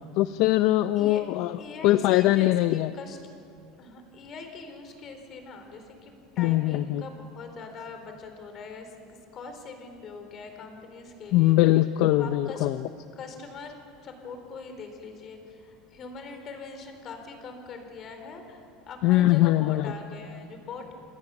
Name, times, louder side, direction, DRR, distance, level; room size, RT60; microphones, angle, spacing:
voice 1, 0.2-2.9 6.4-7.0 11.3-12.8 19.0-19.9, left 15 dB, 60° left, 12 dB, 0.6 m, -22 dB
voice 2, 1.6-3.2 3.8-11.7 12.1-12.7 13.2-13.7 14.0-20.9, left 4 dB, 35° left, 6 dB, 4.2 m, -42 dB
28.5 x 20.5 x 7.1 m, 2.5 s
supercardioid pair, 145°, 0 cm